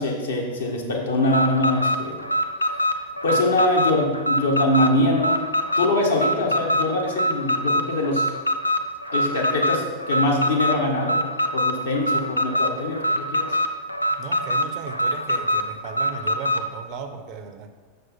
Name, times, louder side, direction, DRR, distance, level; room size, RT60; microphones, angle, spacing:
voice 1, 0.0-2.2 3.2-5.4 5.8-8.3 9.1-13.6, left 1 dB, 70° left, -2 dB, 1.5 m, -23 dB
Alarm, 1.2-16.7, equal, 85° left, 0.4 m, -24 dB
voice 2, 14.1-17.7, right 6 dB, 40° right, 8 dB, 0.7 m, -36 dB
6.4 x 6.3 x 4.4 m, 1.4 s
figure-of-eight pair, 90°, 0 cm